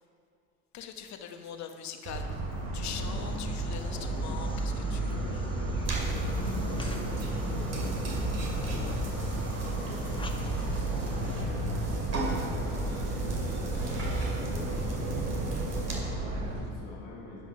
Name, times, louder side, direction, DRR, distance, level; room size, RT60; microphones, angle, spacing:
voice 1, 0.7-2.3 2.7-5.1 10.8-11.0, left 8 dB, 55° left, 6 dB, 1.0 m, -42 dB
Motor vehicle (road) / Siren, 2.1-16.6, right 2 dB, 80° right, 2.5 m, -32 dB
sound 1, 2.9-11.4, left 3 dB, 15° left, 0.9 m, -43 dB
voice 2, 3.0-3.4 4.0-4.3 4.9-10.5 10.9-17.5, left 2 dB, 80° left, -4 dB, 2.0 m, -46 dB
sound 2, 5.8-15.9, right 2 dB, 50° right, 2.3 m, -37 dB
10.5 x 5.9 x 5.7 m, 2.6 s
supercardioid pair, 90°, 34 cm